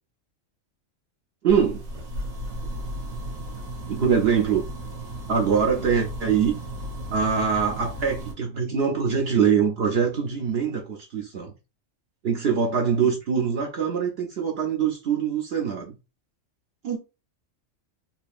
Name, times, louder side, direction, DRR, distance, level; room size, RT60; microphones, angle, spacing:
voice 1, 1.4-1.8 3.9-4.6 5.3-6.6 7.1-11.5 12.2-16.0 16.8-17.0, right 7 dB, 55° right, 0.9 m, -23 dB
sound 1, 1.5-8.3, right 1 dB, 85° right, 1.7 m, -35 dB
4.1 x 2.8 x 2.5 m
omnidirectional pair, 1.3 m